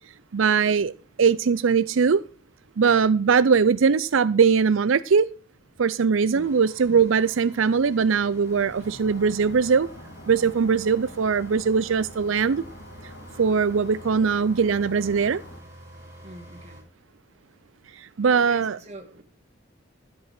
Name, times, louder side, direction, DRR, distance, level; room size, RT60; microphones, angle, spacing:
voice 1, 0.3-0.9 1.2-2.2 2.8-5.2 5.8-9.9 10.3-12.6 13.4-15.4 17.9-18.8, right 5 dB, 85° right, 0.5 m, -21 dB
sound 1, 6.4-16.8, right 1 dB, 15° right, 5.9 m, -48 dB
sound 2, 8.4-15.6, left 1 dB, 60° left, 4.6 m, -45 dB
voice 2, 16.2-16.8 18.3-19.2, right 1 dB, 35° right, 2.2 m, -44 dB
12.5 x 8.3 x 5.8 m
head